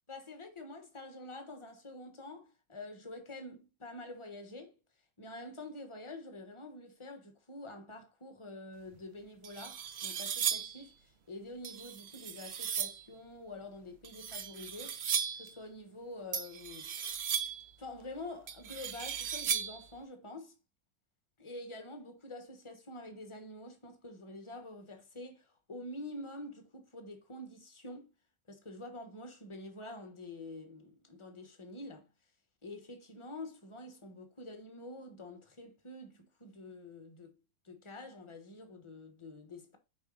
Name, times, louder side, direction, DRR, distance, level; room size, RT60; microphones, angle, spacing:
voice 1, 0.1-4.8 5.2-15.0 15.3-17.0 17.8-20.5 21.4-28.1 28.5-32.1 32.6-37.4 37.6-39.8, left 2 dB, 20° left, 0.9 m, -47 dB
sound 1, 8.9-9.0 9.4-10.8 11.6-13.0 14.0-15.5 16.3-17.7 18.5-19.9, right 8 dB, 55° right, 0.7 m, -36 dB
7.0 x 4.8 x 3.9 m
omnidirectional pair, 2.0 m